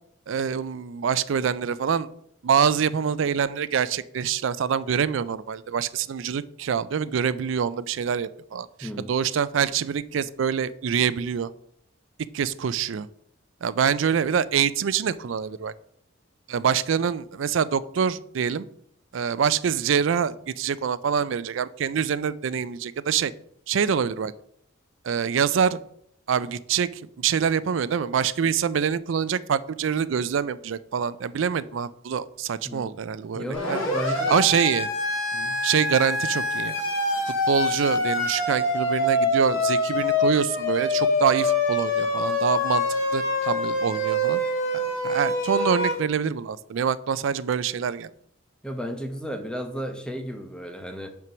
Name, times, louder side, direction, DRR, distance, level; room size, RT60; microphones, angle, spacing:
voice 1, 0.3-2.1 2.4-11.5 12.3-13.1 13.6-15.7 16.5-18.6 19.1-23.3 23.7-24.3 25.0-25.8 26.3-33.8 34.3-34.9 35.6-36.8 37.5-42.8 43.1-44.4 44.7-48.1, right 7 dB, 65° right, 17 dB, 0.4 m, -25 dB
voice 2, 8.8-9.1 32.6-32.9 33.3-34.4 35.3-35.6 48.6-51.1, equal, 5° left, 5 dB, 0.8 m, -33 dB
Siren, 33.5-45.9, left 1 dB, 80° left, 2.3 m, -25 dB
6.0 x 4.5 x 6.1 m, 0.70 s
head